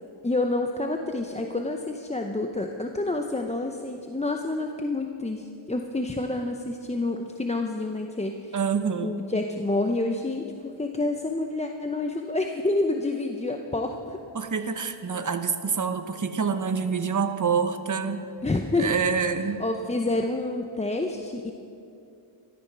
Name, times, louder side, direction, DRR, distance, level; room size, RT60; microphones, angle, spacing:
voice 1, 0.2-8.6 9.0-14.2 18.4-19.0 19.6-21.5, left 2 dB, 15° left, 3 dB, 0.7 m, -28 dB
voice 2, 8.5-9.2 14.3-18.3 18.8-19.6, right 6 dB, 35° right, 8 dB, 1.0 m, -26 dB
13.0 x 13.0 x 6.0 m, 2.6 s
wide cardioid pair, 90°, 50 cm